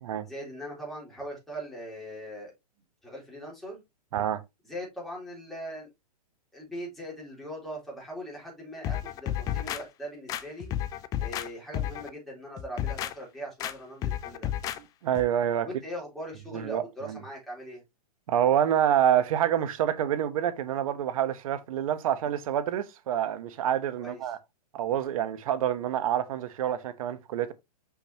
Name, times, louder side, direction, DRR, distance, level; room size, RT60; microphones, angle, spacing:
voice 1, 0.2-2.5 3.0-3.8 4.6-5.9 6.5-10.7 11.2-14.5 15.6-17.8 24.0-24.3, equal, ahead, 3.4 m, -40 dB
sound 1, 8.8-9.8 10.3-11.5 11.7-12.1 12.6-13.1 13.6-13.7 14.0-14.8 15.1-15.3, left 11 dB, 15° left, 0.4 m, -31 dB
voice 2, 15.0-15.7 16.5-17.2 18.3-24.4 24.7-27.5, right 10 dB, 55° right, 1.0 m, -27 dB
6.0 x 5.9 x 2.9 m
hypercardioid pair, 140°, 21 cm